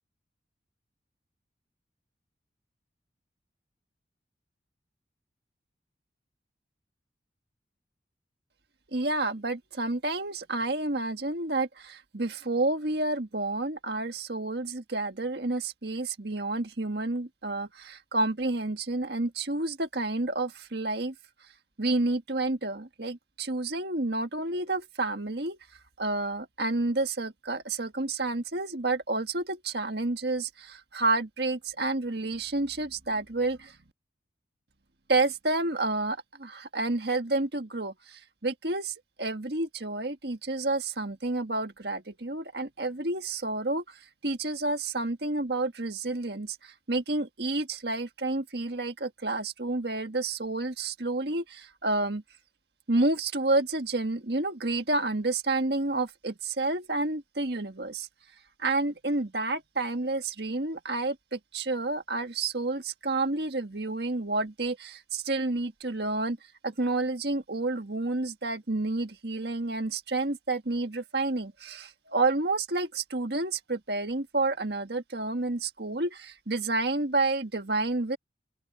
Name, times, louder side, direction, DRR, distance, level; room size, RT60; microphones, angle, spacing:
voice 1, 8.9-21.2 21.8-25.6 26.0-33.8 35.1-52.2 52.9-58.1 58.6-66.4 66.6-78.2, right 2 dB, 60° right, 1.8 m, -30 dB
open air
head